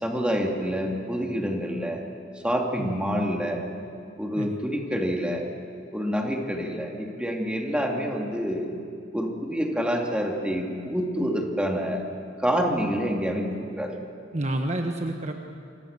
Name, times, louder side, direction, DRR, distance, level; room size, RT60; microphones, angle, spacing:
voice 1, 0.0-2.0 2.4-3.6 4.2-5.4 5.9-8.7 9.1-12.0 12.4-13.9, equal, 5° right, 1 dB, 2.8 m, -27 dB
voice 2, 14.3-15.3, right 1 dB, 40° right, 4 dB, 1.3 m, -29 dB
29.0 x 24.5 x 6.8 m, 2.4 s
head